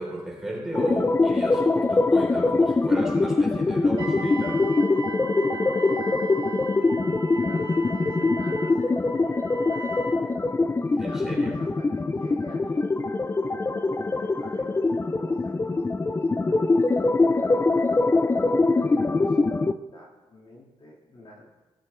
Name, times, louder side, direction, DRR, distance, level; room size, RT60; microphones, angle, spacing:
voice 1, 0.0-4.7 11.0-11.5, right 1 dB, 5° right, -3 dB, 3.7 m, -34 dB
sound 1, 0.7-19.7, left 3 dB, 20° left, 0.4 m, -23 dB
Wind instrument woodwind instrument, 4.0-10.2, right 1 dB, 45° right, 3.6 m, -37 dB
voice 2, 5.6-10.1 10.8-13.0 14.0-17.7 17.9-21.5, left 1 dB, 45° left, -2 dB, 2.2 m, -46 dB
17.5 x 7.5 x 3.3 m, 1.1 s
cardioid pair, 95°, 12 cm